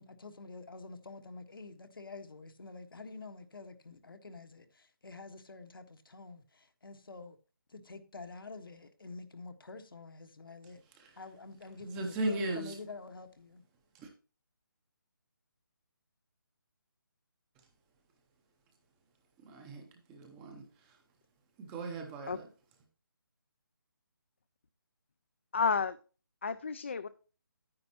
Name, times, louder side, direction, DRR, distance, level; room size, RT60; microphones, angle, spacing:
voice 1, 0.0-7.4 7.7-10.8 11.2-13.6, left 3 dB, 80° left, 1.4 m, -48 dB
voice 2, 11.8-12.8 13.9-14.1 19.4-21.0 21.6-22.5, right 2 dB, 10° right, 0.6 m, -38 dB
voice 3, 25.5-26.0 26.4-27.1, left 5 dB, 35° left, 0.3 m, -31 dB
9.5 x 9.4 x 2.9 m
hypercardioid pair, 170°, 12 cm